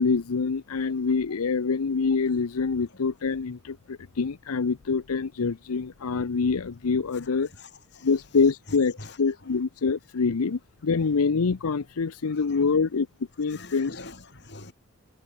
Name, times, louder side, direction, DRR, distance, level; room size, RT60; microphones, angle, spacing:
voice 1, 0.0-7.5 8.0-13.1 13.4-14.0, left 4 dB, 80° left, 0.6 m, -25 dB
voice 2, 7.1-8.2 8.7-9.5 12.2-12.7 13.5-14.7, left 3 dB, 50° left, 4.3 m, -46 dB
head